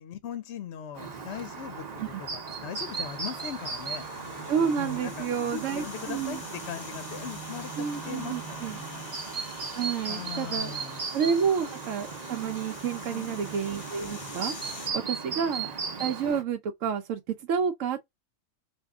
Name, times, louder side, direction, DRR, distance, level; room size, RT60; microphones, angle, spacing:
voice 1, 0.0-4.1 4.8-9.1 10.0-11.5 12.9-13.4 14.7-15.6, left 8 dB, 65° left, 0.8 m, -40 dB
Chirp tweet, 0.9-16.4, right 5 dB, 35° right, 0.8 m, -37 dB
sound 1, 2.7-14.9, left 3 dB, 40° left, 0.5 m, -46 dB
sound 2, 3.3-9.3, right 2 dB, 10° left, 0.8 m, -47 dB
voice 2, 4.5-6.4 7.8-8.8 9.7-10.7 11.1-14.5 14.9-15.7 16.0-18.0, right 7 dB, 75° right, 1.0 m, -29 dB
3.5 x 2.3 x 3.5 m
omnidirectional pair, 1.4 m